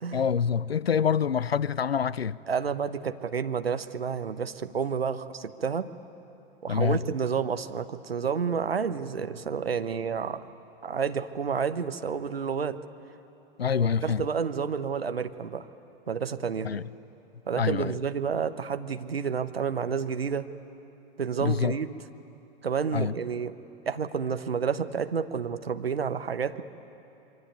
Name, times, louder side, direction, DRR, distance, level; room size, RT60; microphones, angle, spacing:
voice 1, 0.1-2.4 6.7-7.0 13.6-14.2 16.6-16.8 17.6-17.9 21.4-21.8 22.9-23.1, left 7 dB, 85° left, 0.6 m, -26 dB
voice 2, 2.5-5.9 6.6-10.4 10.8-12.8 14.0-15.7 16.1-16.7 17.5-20.5 21.2-21.9 22.6-23.6 23.9-26.6, right 6 dB, 80° right, 1.1 m, -30 dB
26.5 x 23.5 x 9.5 m
figure-of-eight pair, 90°, 30 cm